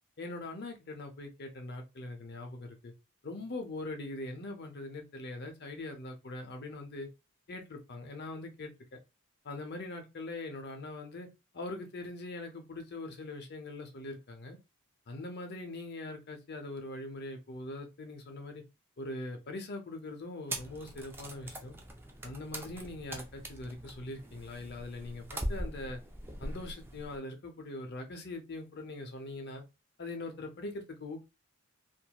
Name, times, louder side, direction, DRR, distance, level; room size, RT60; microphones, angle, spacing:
voice 1, 0.2-2.9 3.2-7.1 7.5-8.7 9.4-11.3 11.5-14.6 15.1-18.6 19.0-21.8 22.2-26.0 26.4-29.6 30.0-31.3, left 2 dB, 50° left, 4 dB, 0.7 m, -42 dB
sound 1, 20.5-27.2, right 1 dB, 10° right, 0.4 m, -42 dB
2.9 x 2.6 x 2.3 m, 0.26 s
head